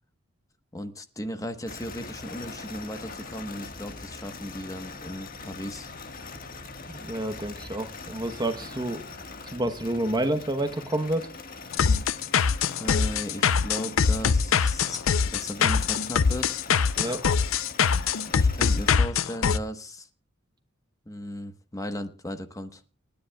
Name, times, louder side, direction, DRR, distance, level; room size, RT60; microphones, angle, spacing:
voice 1, 0.7-5.9 12.8-15.1 15.3-16.6 18.3-20.1 21.1-22.8, equal, 15° left, 8 dB, 1.1 m, -36 dB
sound 1, 1.6-19.0, left 3 dB, 45° left, 1.5 m, -42 dB
voice 2, 6.9-9.0 9.5-11.3 17.0-17.4, right 1 dB, 20° right, 9 dB, 0.9 m, -29 dB
sound 2, 11.7-19.6, left 6 dB, 85° left, 0.5 m, -23 dB
29.5 x 10.5 x 2.3 m, 0.31 s
head